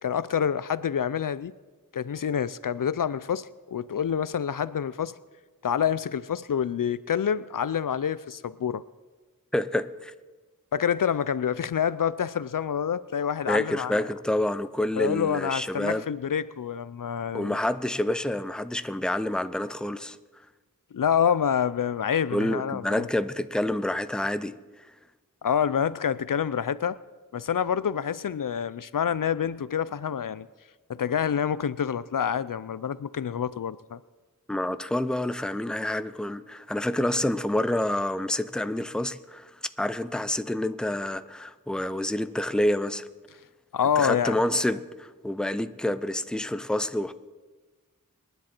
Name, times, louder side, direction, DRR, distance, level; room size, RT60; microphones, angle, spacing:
voice 1, 0.0-1.5 1.9-5.2 5.6-8.8 10.7-14.0 15.0-17.6 20.9-23.1 25.4-27.0 27.3-30.5 30.9-34.0 43.7-44.4, left 8 dB, 75° left, 0.5 m, -27 dB
voice 2, 9.5-10.1 13.5-16.0 17.3-20.2 22.3-24.5 34.5-39.5 39.8-43.1 44.0-47.1, left 1 dB, ahead, 0.6 m, -28 dB
27.0 x 10.5 x 4.4 m
wide cardioid pair, 50°, 33 cm